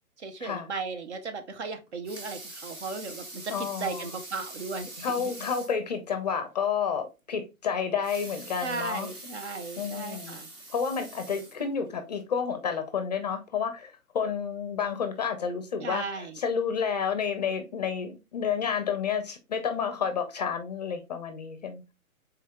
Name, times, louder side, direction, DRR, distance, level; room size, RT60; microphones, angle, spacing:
voice 1, 0.2-5.1 8.6-10.5 15.8-16.4, right 4 dB, 50° right, 0.9 m, -36 dB
Water tap faucet / Sink (filling or washing) / Liquid, 1.8-5.8 6.3-6.4 6.7-6.8 7.9-12.0 12.6-12.7, right 2 dB, 20° right, 0.6 m, -44 dB
voice 2, 3.5-4.1 5.0-9.1 9.8-10.4 10.7-21.9, left 6 dB, 30° left, 0.5 m, -30 dB
4.2 x 3.8 x 2.2 m
figure-of-eight pair, 125°, 43 cm